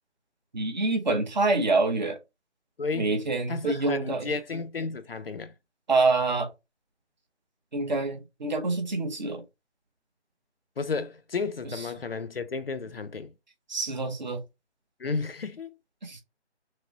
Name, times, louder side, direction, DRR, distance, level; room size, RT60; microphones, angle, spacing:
voice 1, 0.5-2.2 2.9-4.3 5.9-6.5 7.7-9.4 11.6-11.9 13.7-14.4 16.0-16.2, right 3 dB, 40° right, 0.9 m, -26 dB
voice 2, 2.8-3.1 3.5-5.5 10.8-13.3 15.0-15.7, left 4 dB, 55° left, 0.5 m, -32 dB
6.0 x 2.1 x 2.6 m
figure-of-eight pair, 160°, 35 cm